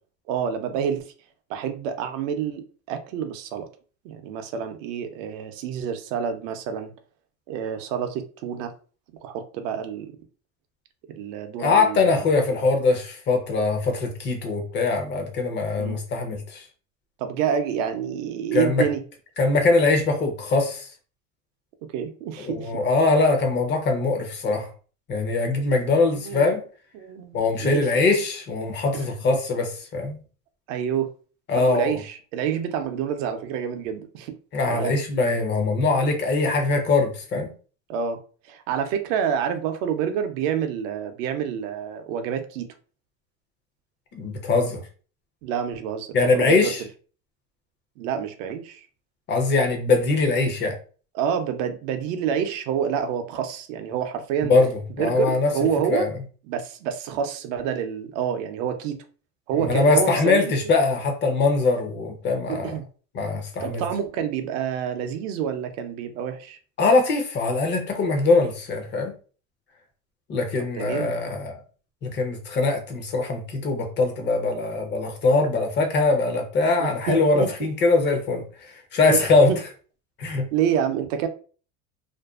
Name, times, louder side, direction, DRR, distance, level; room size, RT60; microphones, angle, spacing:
voice 1, 0.3-1.1 1.5-3.7 4.0-6.9 7.5-8.7 9.2-10.1 11.1-12.2 15.8-16.0 17.2-19.0 21.9-22.7 26.1-26.5 26.9-28.0 28.9-29.0 30.7-31.1 31.5-34.4 34.7-35.0 37.9-38.2 38.5-42.7 45.4-46.1 46.3-46.7 48.0-48.9 51.1-54.5 55.0-56.1 56.5-59.0 59.5-60.5 62.5-62.8 63.6-66.6 70.7-71.1 76.8-77.5 79.1-79.6 80.5-81.3, right 8 dB, 65° right, 0.6 m, -28 dB
voice 2, 11.6-16.6 18.5-18.8 19.4-20.9 22.4-24.7 25.1-26.6 27.3-30.2 31.5-32.0 34.5-37.5 44.1-44.8 46.1-46.8 49.3-50.7 54.5-55.5 55.9-56.1 59.6-62.8 63.1-63.8 66.8-69.1 70.3-71.6 72.0-79.5 80.2-80.5, left 3 dB, 25° left, 0.6 m, -22 dB
2.6 x 2.2 x 2.3 m
supercardioid pair, 125°, 41 cm